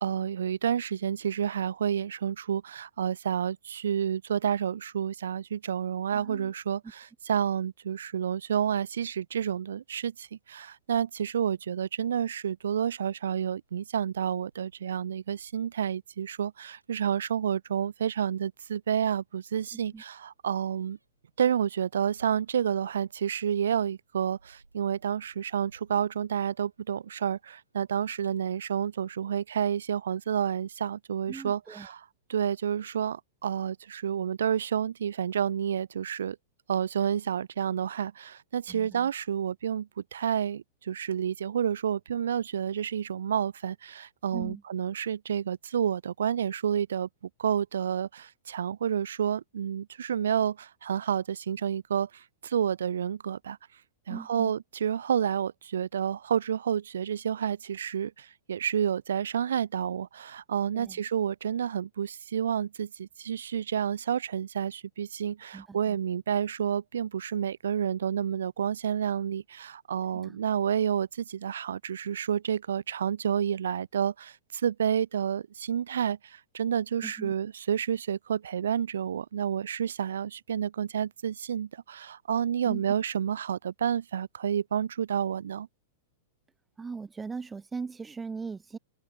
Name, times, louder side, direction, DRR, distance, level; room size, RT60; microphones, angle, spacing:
voice 1, 0.0-21.0 21.4-32.0 32.3-36.4 36.7-47.1 47.4-53.6 54.1-85.7, right 8 dB, 65° right, 0.5 m, -30 dB
voice 2, 6.1-6.5 19.7-20.0 31.3-31.9 38.7-39.1 44.3-44.6 54.1-54.5 60.7-61.0 65.5-66.0 70.1-70.4 77.0-77.3 82.7-82.8 86.8-88.8, right 4 dB, 15° right, 0.4 m, -40 dB
Keys jangling, 10.2-29.3, right 3 dB, 85° right, 4.2 m, -65 dB
figure-of-eight pair, 100°, 0 cm